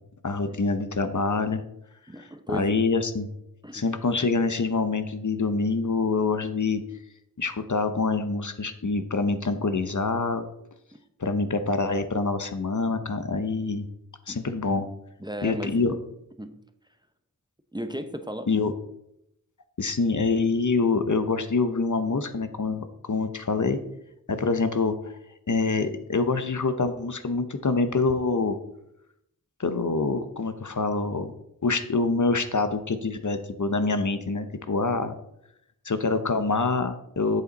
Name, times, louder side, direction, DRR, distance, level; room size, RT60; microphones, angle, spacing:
voice 1, 0.2-1.6 2.5-3.3 3.7-6.8 7.4-10.4 11.2-13.9 14.3-14.9 15.4-15.9 18.5-18.7 19.8-23.8 24.3-25.1 25.5-28.6 29.6-31.3 31.6-35.1 35.8-37.4, left 4 dB, 55° left, 9 dB, 0.8 m, -25 dB
voice 2, 2.1-2.9 3.6-3.8 14.3-14.4 15.2-15.8 16.4-16.6 17.7-18.5, equal, 10° right, 8 dB, 0.7 m, -35 dB
8.1 x 6.9 x 4.0 m, 0.80 s
wide cardioid pair, 45°, 35 cm